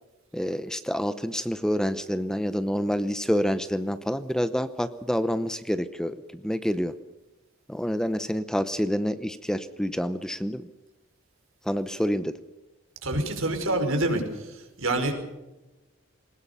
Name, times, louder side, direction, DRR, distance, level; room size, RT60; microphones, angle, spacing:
voice 1, 0.3-6.9 7.7-10.7 11.6-12.3, equal, 5° left, 12 dB, 0.8 m, -27 dB
voice 2, 13.0-14.2 14.8-15.1, right 2 dB, 75° right, 4 dB, 5.3 m, -25 dB
21.0 x 20.0 x 6.9 m, 1.0 s
head